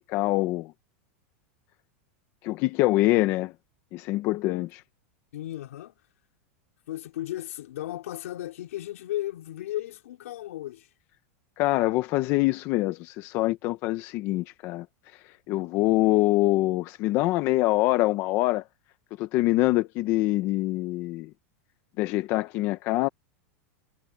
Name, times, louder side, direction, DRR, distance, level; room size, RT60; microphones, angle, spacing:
voice 1, 0.1-0.7 2.4-3.5 3.9-4.8 11.6-14.9 15.5-18.6 19.2-21.3 22.0-23.1, left 18 dB, 30° left, 0.7 m, -24 dB
voice 2, 5.3-5.9 6.9-10.9, left 14 dB, 75° left, 3.9 m, -35 dB
supercardioid pair, 175°, 8 cm